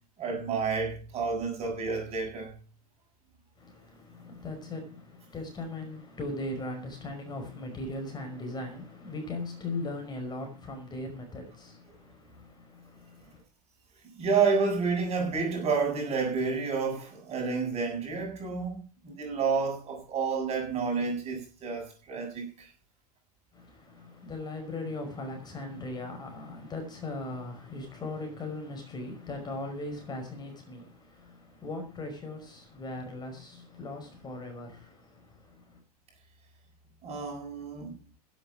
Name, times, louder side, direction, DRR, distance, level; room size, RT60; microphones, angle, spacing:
voice 1, 0.2-2.5 14.2-22.7 37.0-37.9, right 5 dB, 30° right, 7.6 m, -30 dB
voice 2, 3.6-13.4 23.5-35.8, left 2 dB, 20° left, 5.3 m, -39 dB
16.0 x 8.3 x 6.2 m
figure-of-eight pair, 90°, 20 cm